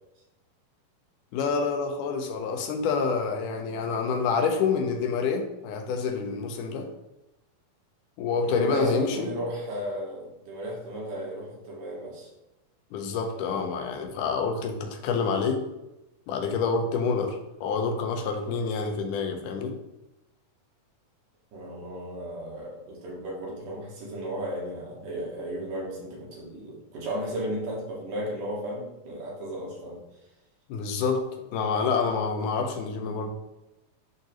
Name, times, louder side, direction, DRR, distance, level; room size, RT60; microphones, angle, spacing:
voice 1, 1.3-6.9 8.2-9.3 12.9-15.6 16.3-19.8 30.7-31.2 31.5-33.3, left 5 dB, 80° left, 4 dB, 2.3 m, -27 dB
voice 2, 8.4-12.3 21.5-30.0, equal, 75° right, -4 dB, 3.4 m, -34 dB
10.5 x 3.7 x 3.0 m, 0.96 s
omnidirectional pair, 3.7 m